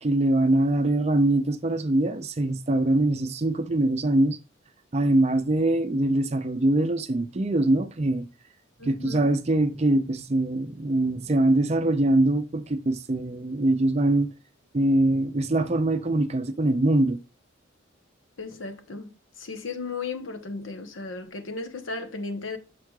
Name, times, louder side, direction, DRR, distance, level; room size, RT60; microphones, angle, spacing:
voice 1, 0.0-4.4 4.9-8.3 8.8-14.3 14.7-17.2, right 1 dB, 35° right, 0.5 m, -23 dB
voice 2, 8.8-9.3 18.4-19.1 19.4-22.6, left 3 dB, 80° left, 1.0 m, -35 dB
6.6 x 6.3 x 2.3 m
head